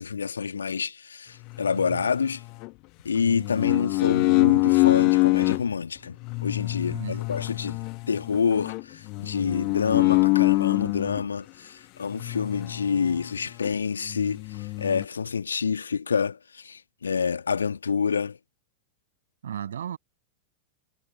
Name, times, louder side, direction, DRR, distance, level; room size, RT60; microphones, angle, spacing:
voice 1, 0.0-2.4 3.0-6.2 6.4-7.8 8.1-18.4, left 6 dB, 70° left, 1.7 m, -27 dB
sound 1, 1.5-2.7 3.2-5.6 6.2-11.2 12.1-13.3 13.6-13.7 14.1-15.0, left 28 dB, 45° left, 1.0 m, -25 dB
voice 2, 1.7-2.1 6.9-7.2 19.4-20.0, right 9 dB, 65° right, 6.8 m, -35 dB
figure-of-eight pair, 90°, 0 cm